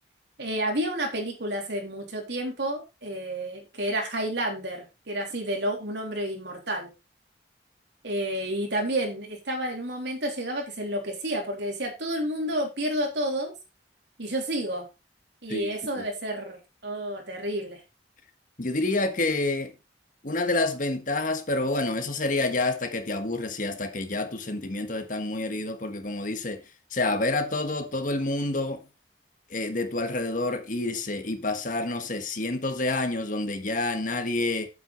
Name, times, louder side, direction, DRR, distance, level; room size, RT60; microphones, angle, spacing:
voice 1, 0.4-6.9 8.0-13.5 14.2-14.9 15.4-17.8, right 1 dB, 70° right, 3.4 m, -30 dB
voice 2, 18.6-19.7 20.2-26.6 26.9-28.8 29.5-34.7, left 2 dB, 45° left, 1.5 m, -28 dB
8.8 x 8.2 x 4.0 m
head